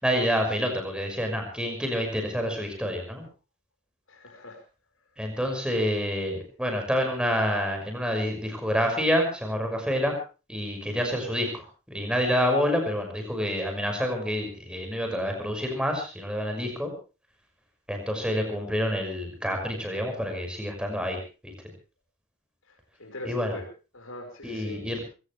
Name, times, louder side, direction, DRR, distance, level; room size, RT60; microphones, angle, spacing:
voice 1, 0.0-3.2 5.2-10.1 10.5-16.9 17.9-21.5 23.2-23.6 24.4-25.0, equal, 5° right, 3 dB, 6.0 m, -28 dB
voice 2, 4.1-4.6 23.0-23.6 23.9-24.9, left 1 dB, 65° left, 2 dB, 5.5 m, -41 dB
23.5 x 17.5 x 3.4 m, 0.34 s
head